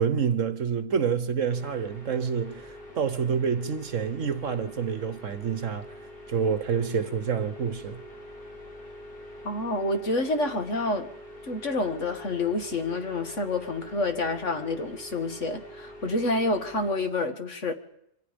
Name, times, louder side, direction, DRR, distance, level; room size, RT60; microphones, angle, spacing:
voice 1, 0.0-5.9 6.3-8.0, right 6 dB, 55° right, 1.4 m, -28 dB
sound 1, 1.5-16.9, equal, 75° left, 5.1 m, -45 dB
voice 2, 9.4-11.1 11.5-17.7, left 2 dB, 50° left, 2.1 m, -28 dB
27.5 x 24.5 x 5.2 m
omnidirectional pair, 1.6 m